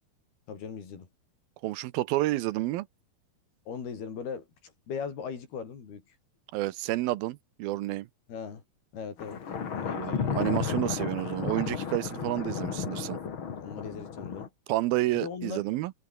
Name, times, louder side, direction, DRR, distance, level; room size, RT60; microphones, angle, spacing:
voice 1, 0.5-1.1 3.7-6.2 8.3-8.6 8.9-9.4 9.7-10.0 13.6-14.5 15.1-15.6, left 6 dB, 75° left, 6.4 m, -39 dB
voice 2, 1.6-2.9 6.5-8.1 9.9-13.2 14.7-15.9, right 17 dB, 80° right, 2.5 m, -30 dB
Thunder, 9.2-14.5, left 7 dB, 40° left, 2.3 m, -33 dB
omnidirectional pair, 4.5 m